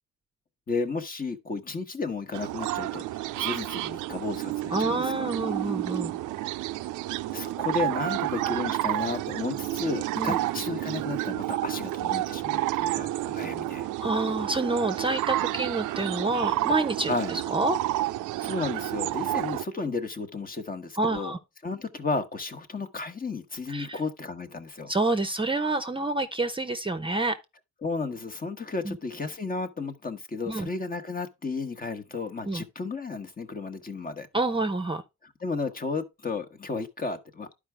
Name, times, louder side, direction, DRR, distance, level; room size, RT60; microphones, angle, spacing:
voice 1, 0.7-5.3 7.3-13.9 17.1-17.3 18.4-21.4 21.6-24.9 27.8-34.3 35.2-37.5, left 4 dB, 30° left, 1.1 m, -33 dB
sound 1, 2.3-19.6, right 15 dB, 85° right, 0.5 m, -30 dB
voice 2, 4.7-6.1 10.2-10.4 14.0-17.8 21.0-21.4 23.7-24.0 24.9-27.4 28.8-29.0 30.5-30.7 32.4-32.6 34.3-35.0, right 2 dB, 15° right, 0.8 m, -28 dB
11.0 x 4.9 x 3.3 m
cardioid pair, 90°, 30 cm